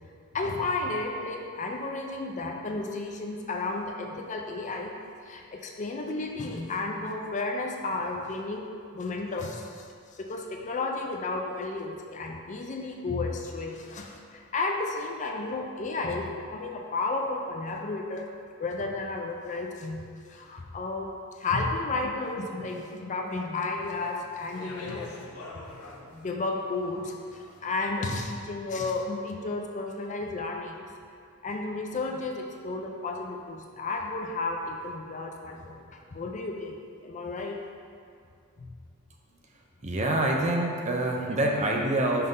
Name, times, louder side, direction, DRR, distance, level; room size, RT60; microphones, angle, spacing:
voice 1, 0.3-8.7 8.9-9.9 10.1-18.3 18.6-21.1 21.4-25.1 25.5-25.7 26.1-30.9 31.4-37.6 38.6-38.7, left 3 dB, 35° left, 1 dB, 0.5 m, -33 dB
Speech, 23.8-28.2, left 2 dB, 75° left, 0.8 m, -46 dB
voice 2, 39.8-42.3, right 1 dB, 30° right, 0 dB, 0.7 m, -26 dB
5.8 x 5.3 x 3.7 m, 2.3 s
head